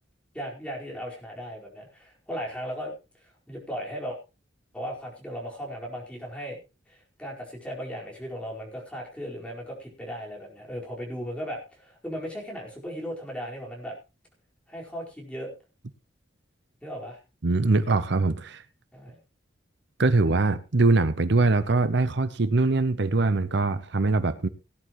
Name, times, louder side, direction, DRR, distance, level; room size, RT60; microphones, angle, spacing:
voice 1, 0.3-2.9 3.5-4.2 4.7-6.6 6.9-13.9 14.7-15.5 16.8-17.2 18.9-19.1, equal, 5° left, -3 dB, 4.7 m, -36 dB
voice 2, 17.4-18.6 20.0-24.5, right 3 dB, 65° right, 13 dB, 0.8 m, -22 dB
18.5 x 10.5 x 3.1 m, 0.30 s
head